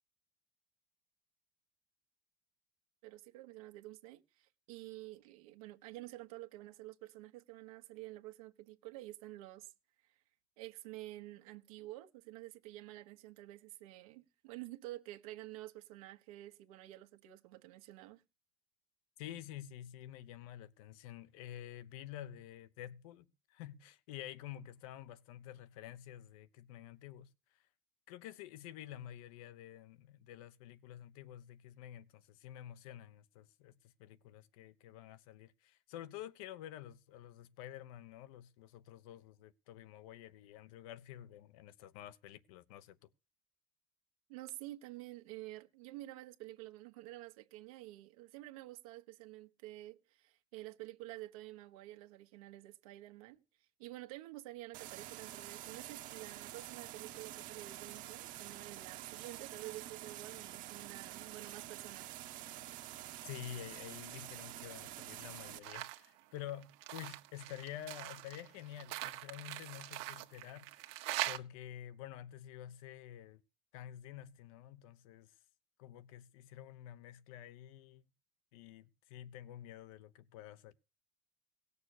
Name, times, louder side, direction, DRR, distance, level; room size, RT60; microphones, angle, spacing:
voice 1, 3.0-9.7 10.6-18.2 44.3-62.1, right 17 dB, 85° right, 1.4 m, -50 dB
voice 2, 19.2-27.3 28.1-43.0 63.2-71.0 71.3-73.4 73.7-75.3 75.8-78.0 78.5-80.7, left 12 dB, 80° left, 1.0 m, -49 dB
sound 1, 54.7-65.6, right 14 dB, 50° right, 1.1 m, -48 dB
sound 2, 65.6-66.1 66.4-71.4, right 17 dB, 70° right, 1.3 m, -42 dB
17.5 x 6.9 x 6.7 m
cardioid pair, 150°, 18 cm